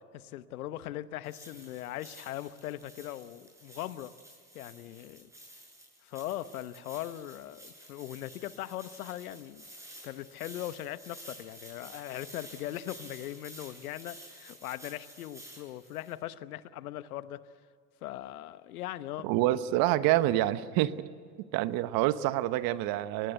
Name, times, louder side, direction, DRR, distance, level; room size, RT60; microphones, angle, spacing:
voice 1, 0.1-4.1 4.5-5.3 6.0-9.7 10.0-17.4 18.0-19.3, left 13 dB, 80° left, 14 dB, 1.1 m, -40 dB
sound 1, 1.2-16.1, right 1 dB, 5° right, 7.8 m, -52 dB
voice 2, 19.2-20.9 21.5-23.3, right 15 dB, 55° right, 14 dB, 1.2 m, -27 dB
24.5 x 19.5 x 8.1 m, 2.2 s
hypercardioid pair, 95°, 43 cm